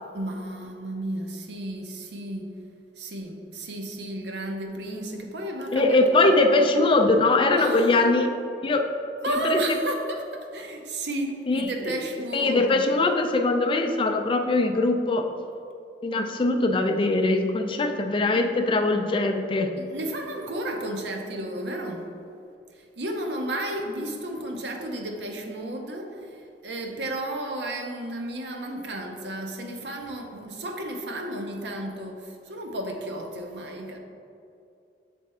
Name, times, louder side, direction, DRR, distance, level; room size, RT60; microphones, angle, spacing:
voice 1, 0.1-2.5 3.0-6.6 7.6-8.3 9.2-12.8 19.8-22.1 22.7-34.0, right 1 dB, 70° right, 3 dB, 0.7 m, -33 dB
voice 2, 5.7-8.3 8.6-8.9 9.3-9.6 11.5-12.0 12.3-15.3 16.0-19.7, left 2 dB, 30° left, 5 dB, 0.4 m, -22 dB
7.3 x 3.5 x 4.2 m, 2.6 s
head